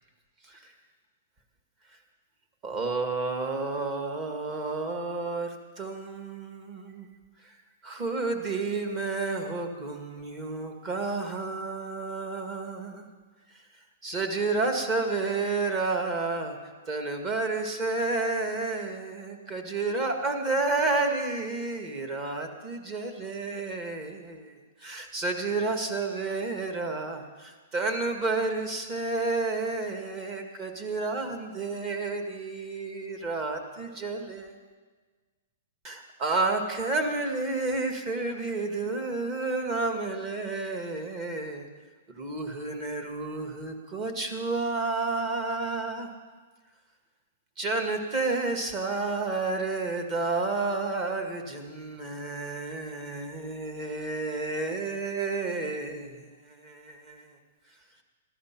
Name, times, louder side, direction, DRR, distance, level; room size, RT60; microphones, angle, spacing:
voice 1, 2.6-7.1 7.4-7.6 7.8-13.0 14.0-16.6 16.9-24.6 24.8-34.5 35.8-41.7 42.2-46.1 47.6-57.3, right 3 dB, 25° right, 4 dB, 1.8 m, -30 dB
15.0 x 12.0 x 6.0 m, 1.4 s
hypercardioid pair, 155°, 0 cm